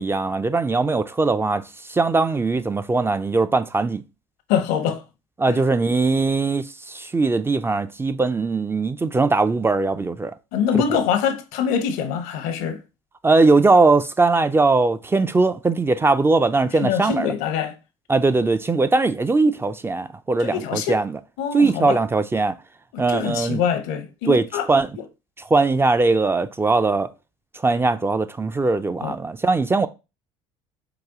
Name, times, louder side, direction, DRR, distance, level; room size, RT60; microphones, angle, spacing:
voice 1, 0.0-4.0 5.4-10.4 10.7-10.8 13.2-17.3 18.1-21.2 21.5-22.6 23.0-23.6 24.3-24.9 25.4-27.1 27.5-29.9, right 3 dB, 15° right, 0.4 m, -20 dB
voice 2, 4.5-5.0 5.5-5.6 10.5-12.8 16.8-17.7 20.4-20.9 21.4-22.0 22.9-24.6 29.0-29.1, left 8 dB, 75° left, 0.7 m, -24 dB
4.8 x 2.3 x 3.6 m
hypercardioid pair, 75°, 15 cm